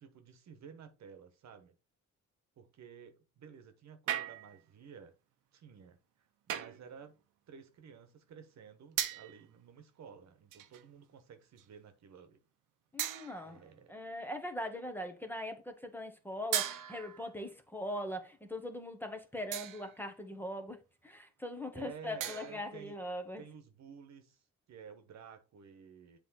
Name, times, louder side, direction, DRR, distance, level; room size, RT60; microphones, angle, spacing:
voice 1, 0.0-1.7 2.6-5.2 5.5-7.2 7.5-12.4 13.4-13.9 21.7-23.0 23.4-26.2, right 7 dB, 65° right, 1.2 m, -53 dB
sound 1, 4.1-4.7 6.5-6.9 9.0-9.4 10.5-10.9 11.6-11.7 13.0-13.6 16.5-17.3 19.5-20.0 22.2-22.7, right 11 dB, 85° right, 0.8 m, -37 dB
voice 2, 12.9-13.6 13.9-23.4, left 1 dB, 5° left, 1.2 m, -41 dB
7.7 x 3.3 x 4.1 m
cardioid pair, 90°, 30 cm